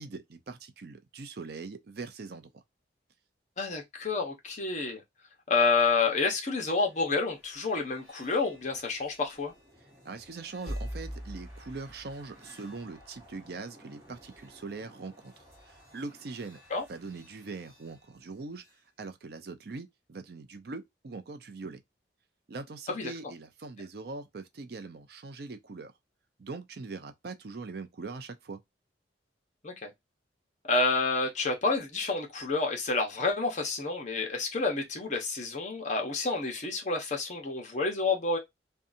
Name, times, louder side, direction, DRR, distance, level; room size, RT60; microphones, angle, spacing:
voice 1, 0.0-2.6 10.0-16.6 16.9-18.6 19.0-21.8 22.5-25.9 26.4-28.6, right 3 dB, 55° right, 0.5 m, -42 dB
voice 2, 3.6-5.0 5.5-9.5 16.7-16.9 22.9-23.1 29.6-29.9 30.7-38.4, left 3 dB, 40° left, 0.9 m, -29 dB
sound 1, 6.0-18.8, equal, 15° right, 1.2 m, -47 dB
2.7 x 2.3 x 2.5 m
head